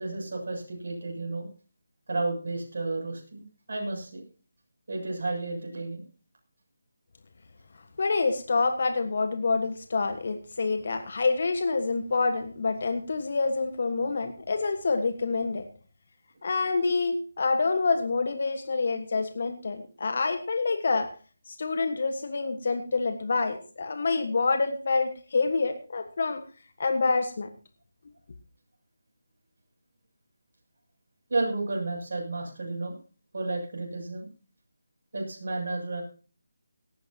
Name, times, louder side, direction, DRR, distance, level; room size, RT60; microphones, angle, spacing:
voice 1, 0.0-1.5 2.1-4.2 4.9-6.1 31.3-33.0 33.3-34.3 35.1-36.0, right 2 dB, 60° right, 0 dB, 7.6 m, -32 dB
voice 2, 8.0-15.6 16.4-21.1 21.5-26.4 26.8-27.5, left 4 dB, 55° left, 8 dB, 1.5 m, -27 dB
18.0 x 14.0 x 2.9 m, 0.37 s
figure-of-eight pair, 155°, 0 cm